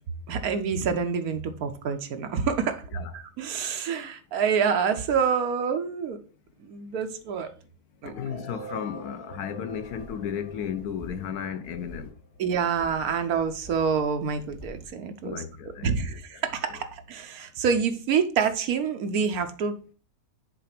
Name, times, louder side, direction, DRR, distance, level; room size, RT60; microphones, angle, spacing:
voice 1, 0.3-2.8 3.1-6.2 6.6-7.5 8.0-8.1 12.4-15.4 15.8-19.9, right 6 dB, 70° right, 1.3 m, -27 dB
voice 2, 8.0-12.1 15.2-16.4, left 8 dB, 75° left, 1.2 m, -34 dB
sound 1, 8.1-12.0, right 1 dB, 5° right, 1.9 m, -44 dB
sound 2, 9.7-11.4 11.6-12.1 12.6-14.9, equal, 20° left, 1.2 m, -48 dB
6.8 x 3.9 x 5.8 m
omnidirectional pair, 1.7 m